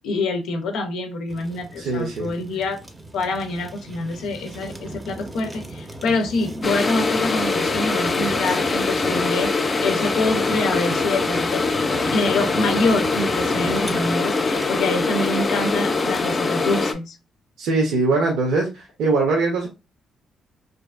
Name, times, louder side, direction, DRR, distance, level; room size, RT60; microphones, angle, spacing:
voice 1, 0.0-2.8 3.1-11.6 11.9-17.2, left 2 dB, 90° left, 5 dB, 0.5 m, -26 dB
Fire, 1.3-16.4, right 1 dB, 20° right, 0.5 m, -37 dB
voice 2, 1.8-2.3 17.6-19.7, right 3 dB, 85° right, 0 dB, 0.7 m, -21 dB
sound 1, 6.6-16.9, left 3 dB, 30° left, 0.4 m, -23 dB
2.6 x 2.4 x 2.3 m, 0.26 s
cardioid pair, 115°, 0 cm